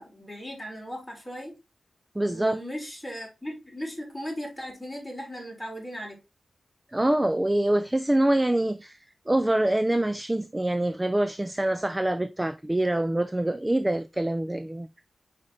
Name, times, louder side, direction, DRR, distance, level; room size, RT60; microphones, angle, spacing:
voice 1, 0.0-1.5 2.3-6.2, equal, 5° left, 3.4 m, -37 dB
voice 2, 2.2-2.6 6.9-9.0 9.3-14.9, right 1 dB, 15° right, 0.4 m, -25 dB
5.0 x 4.9 x 4.2 m
wide cardioid pair, 90°, 0 cm